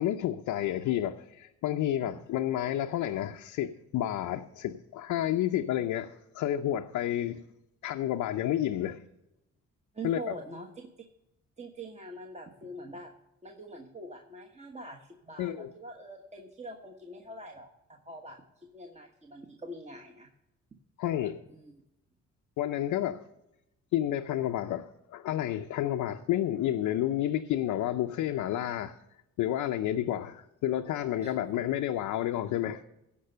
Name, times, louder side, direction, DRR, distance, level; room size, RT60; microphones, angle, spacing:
voice 1, 0.0-7.4 7.8-9.0 10.0-10.3 15.4-15.7 21.0-21.4 22.6-23.2 23.9-28.9 29.4-32.8, left 12 dB, 85° left, 0.6 m, -30 dB
voice 2, 9.9-10.7 11.6-13.1 13.4-20.3 21.2-21.7 31.2-31.4, right 1 dB, 20° right, 1.2 m, -44 dB
15.5 x 5.4 x 6.6 m
cardioid pair, 90°, 30 cm